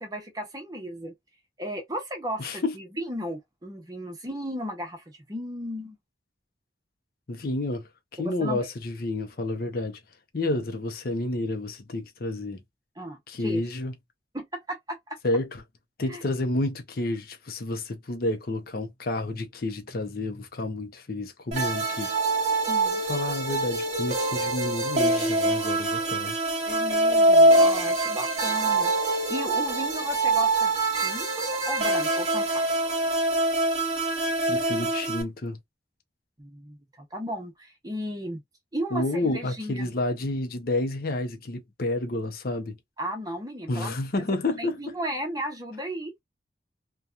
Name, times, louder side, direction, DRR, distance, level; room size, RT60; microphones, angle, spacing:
voice 1, 0.0-1.1 1.6-6.0 8.2-8.7 13.0-13.6 14.3-15.0 16.1-16.2 22.7-23.0 26.7-32.6 36.4-38.4 38.7-39.9 43.0-43.9 44.3-46.1, equal, 20° right, 0.8 m, -35 dB
voice 2, 2.4-2.8 7.3-10.0 10.3-12.6 13.3-13.9 15.2-15.6 16.0-22.1 23.0-26.5 34.5-35.6 38.9-42.8 43.7-44.8, left 2 dB, 55° left, 0.6 m, -30 dB
sound 1, 21.5-35.2, right 2 dB, 40° right, 1.1 m, -24 dB
2.8 x 2.3 x 2.3 m
head